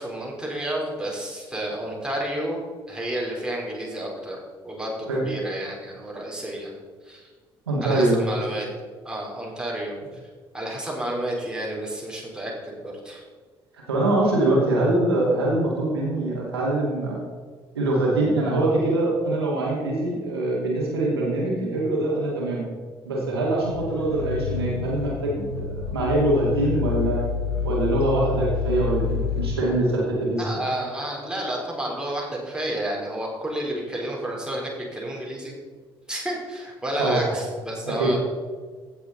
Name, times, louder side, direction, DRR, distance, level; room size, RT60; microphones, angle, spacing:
voice 1, 0.0-2.6 2.9-4.4 4.6-6.7 7.0-7.3 7.8-8.7 9.0-10.0 10.5-13.2 30.4-35.5 36.1-38.2, right 1 dB, 5° right, -3 dB, 3.8 m, -31 dB
voice 2, 7.7-8.2 13.7-17.2 17.7-22.6 23.0-27.2 27.6-30.6 37.0-37.2 37.9-38.2, right 2 dB, 80° right, -4 dB, 2.4 m, -23 dB
sound 1, 23.5-29.6, left 7 dB, 80° left, 0.6 m, -28 dB
16.0 x 6.9 x 4.1 m, 1.5 s
figure-of-eight pair, 45°, 13 cm